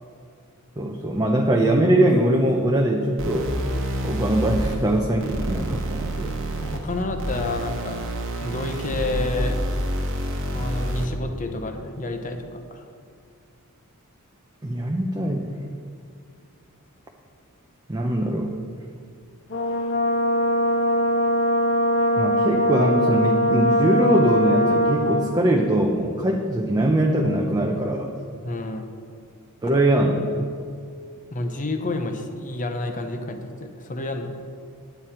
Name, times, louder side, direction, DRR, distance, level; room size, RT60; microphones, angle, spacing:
voice 1, 0.8-3.5 4.0-6.3 14.6-15.5 17.9-18.5 22.2-28.1 29.6-30.5, right 1 dB, 15° right, 1 dB, 0.6 m, -22 dB
sound 1, 3.2-11.2, right 1 dB, 60° right, 1.1 m, -28 dB
voice 2, 6.6-8.0 8.4-9.6 10.5-12.9 28.4-28.9 31.3-34.3, left 2 dB, 35° left, 6 dB, 0.8 m, -29 dB
Brass instrument, 19.5-25.3, equal, 65° left, 1.3 m, -21 dB
9.3 x 9.1 x 4.3 m, 2.3 s
head